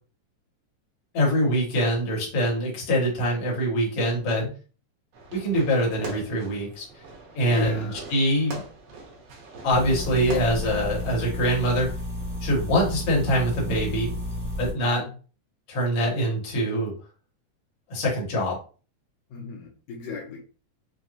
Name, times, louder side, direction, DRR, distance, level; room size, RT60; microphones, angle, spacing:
voice 1, 1.1-4.4 5.3-6.9 7.4-8.6 9.6-11.9 12.4-14.2 14.6-15.0 15.7-16.9 17.9-18.6, equal, 55° left, -3 dB, 2.2 m, -24 dB
voice 2, 4.1-4.5 7.4-8.0 14.7-15.1 19.3-20.4, left 5 dB, 80° left, -1 dB, 2.2 m, -36 dB
Fireworks, 5.1-11.1, right 3 dB, 80° right, 2.7 m, -42 dB
sound 1, 9.7-14.7, left 1 dB, 5° left, 0.3 m, -32 dB
6.3 x 2.2 x 2.5 m, 0.37 s
omnidirectional pair, 3.5 m